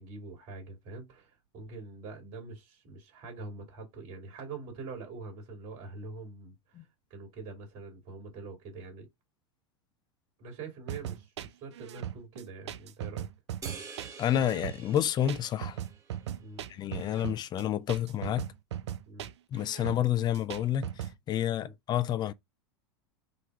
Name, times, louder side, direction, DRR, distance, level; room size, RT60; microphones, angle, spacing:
voice 1, 0.0-9.1 10.4-13.3 16.4-16.7 19.1-19.3 21.6-21.7, right 3 dB, 55° right, 2.4 m, -44 dB
sound 1, 10.9-21.2, right 11 dB, 85° right, 0.5 m, -39 dB
sound 2, 13.6-16.3, right 5 dB, 25° right, 1.6 m, -47 dB
voice 2, 14.2-15.8 16.7-18.5 19.5-22.3, left 11 dB, 30° left, 0.5 m, -29 dB
3.9 x 2.8 x 4.6 m
hypercardioid pair, 110°, 14 cm